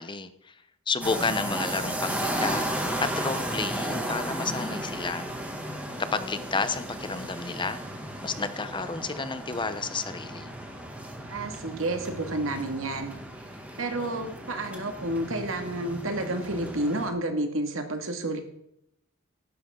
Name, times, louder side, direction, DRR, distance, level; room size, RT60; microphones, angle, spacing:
voice 1, 0.0-2.7 3.0-5.3 6.1-7.8 8.2-10.5, left 4 dB, 25° left, 11 dB, 0.8 m, -31 dB
sound 1, 1.0-17.1, right 1 dB, 5° right, 2.2 m, -34 dB
voice 2, 11.3-13.1 13.8-18.4, right 1 dB, 85° right, 5 dB, 2.1 m, -30 dB
15.5 x 11.5 x 3.8 m, 0.78 s
head